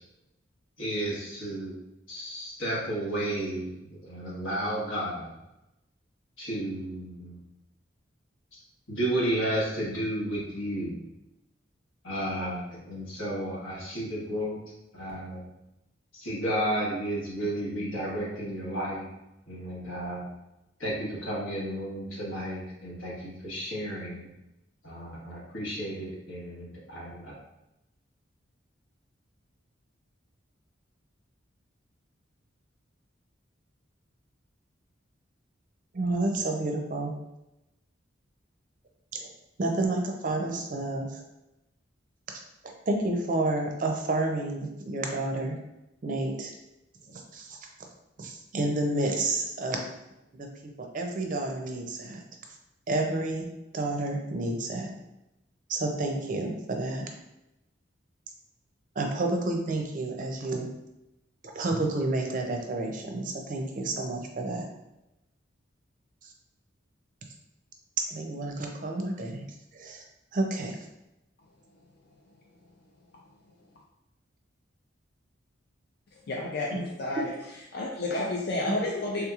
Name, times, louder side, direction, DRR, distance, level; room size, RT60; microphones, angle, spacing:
voice 1, 0.8-1.8 2.1-5.3 6.4-7.4 8.5-8.6 8.9-11.0 12.0-14.6 14.9-15.5 16.1-19.1 19.5-20.3 20.8-24.3 24.8-27.3, right 1 dB, 90° left, -6 dB, 1.3 m, -32 dB
voice 2, 35.9-37.1 39.1-39.3 39.6-41.2 42.6-45.6 46.0-46.5 47.1-47.6 48.2-50.0 50.3-50.5 50.8-52.2 52.9-53.5 53.7-54.9 55.7-57.1 59.0-60.7 61.5-64.7 68.1-69.4 69.7-70.0 70.3-70.8 76.7-76.8, right 2 dB, 45° right, 2 dB, 0.4 m, -30 dB
voice 3, 76.3-77.3 77.7-79.3, left 2 dB, 55° left, -2 dB, 0.4 m, -30 dB
3.4 x 2.9 x 2.4 m, 0.91 s
head